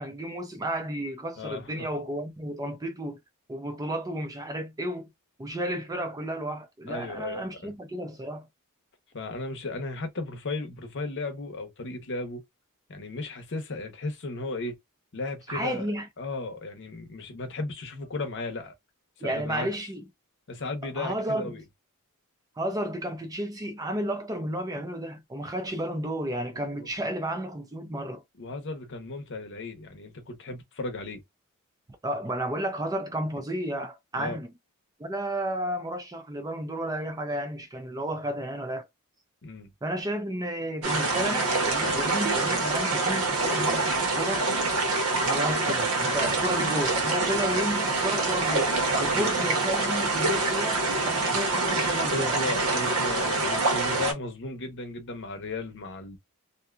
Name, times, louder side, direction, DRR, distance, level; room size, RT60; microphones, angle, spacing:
voice 1, 0.0-3.2 3.5-5.1 5.4-8.5 15.5-16.1 19.2-20.0 21.0-21.6 22.6-28.2 32.0-34.5 35.0-38.8 39.8-44.5 45.2-48.7 49.0-52.4, right 1 dB, 15° right, 0.4 m, -32 dB
voice 2, 1.4-1.9 6.9-7.7 9.1-12.4 12.9-14.8 15.1-15.9 16.2-18.7 19.2-19.7 20.5-21.6 26.8-26.9 28.4-31.2 34.1-34.4 39.4-39.7 41.8-42.0 46.2-46.5 48.9-49.3 51.2-51.4 52.1-56.2, left 3 dB, 55° left, 0.8 m, -35 dB
sound 1, 40.8-54.1, right 3 dB, 75° right, 1.0 m, -26 dB
2.6 x 2.2 x 2.4 m
head